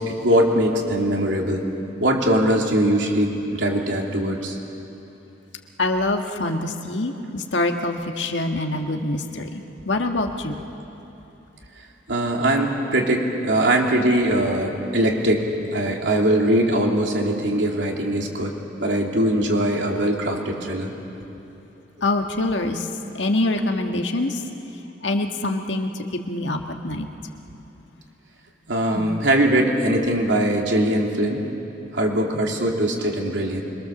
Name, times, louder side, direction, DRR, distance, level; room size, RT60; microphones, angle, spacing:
voice 1, 0.0-1.7 2.0-4.6 12.1-18.5 18.8-20.9 28.7-31.4 31.9-33.6, right 1 dB, 80° right, 0 dB, 3.1 m, -21 dB
voice 2, 5.8-10.5 22.0-22.9 23.1-24.4 25.0-27.1 28.9-29.1, left 2 dB, 80° left, 4 dB, 1.7 m, -25 dB
25.5 x 23.0 x 7.2 m, 3.0 s
head